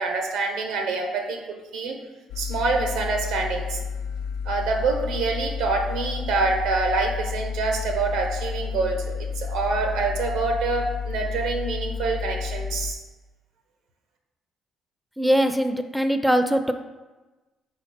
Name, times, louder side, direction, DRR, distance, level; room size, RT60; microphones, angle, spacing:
voice 1, 0.0-2.0 2.4-3.8 4.4-13.0, right 3 dB, 85° right, 3 dB, 1.3 m, -26 dB
sound 1, 2.3-12.9, left 6 dB, 85° left, 0.3 m, -31 dB
voice 2, 15.2-16.7, equal, ahead, 8 dB, 0.6 m, -21 dB
5.1 x 4.3 x 5.7 m, 1.2 s
supercardioid pair, 75°, 0 cm